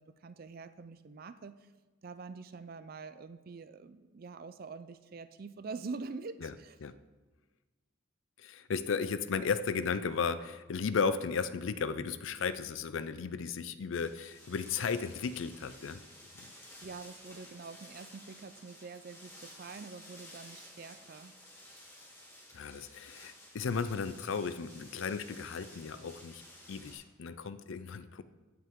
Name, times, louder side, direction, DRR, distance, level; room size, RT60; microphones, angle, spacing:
voice 1, 0.0-1.7 2.0-6.8 16.8-21.3, right 4 dB, 45° right, 13 dB, 0.4 m, -45 dB
voice 2, 8.4-16.0 16.4-16.5 22.5-26.4 26.7-28.2, left 5 dB, 70° left, 13 dB, 0.4 m, -35 dB
sound 1, 13.9-26.9, left 1 dB, 15° left, 2.0 m, -53 dB
15.5 x 5.8 x 3.7 m, 1.3 s
head